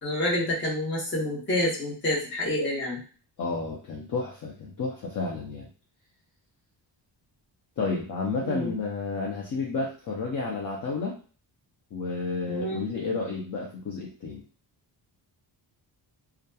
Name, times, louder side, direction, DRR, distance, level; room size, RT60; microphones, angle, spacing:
voice 1, 0.0-3.0 8.4-8.8 12.5-12.8, left 1 dB, 25° left, -3 dB, 0.9 m, -28 dB
voice 2, 3.4-5.7 7.8-11.1 11.9-14.4, left 4 dB, 45° left, -3 dB, 0.6 m, -31 dB
2.7 x 2.3 x 2.3 m, 0.39 s
wide cardioid pair, 150°, 43 cm